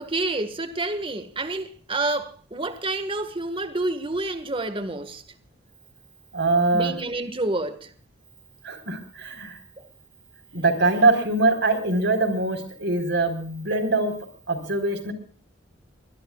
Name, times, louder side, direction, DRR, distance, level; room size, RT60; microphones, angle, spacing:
voice 1, 0.0-5.2 6.7-7.9 9.8-9.9, right 2 dB, 25° right, 1.7 m, -28 dB
voice 2, 6.3-6.9 8.6-9.6 10.5-14.1 14.5-15.1, right 2 dB, 60° right, 4.4 m, -23 dB
23.0 x 21.5 x 2.4 m
head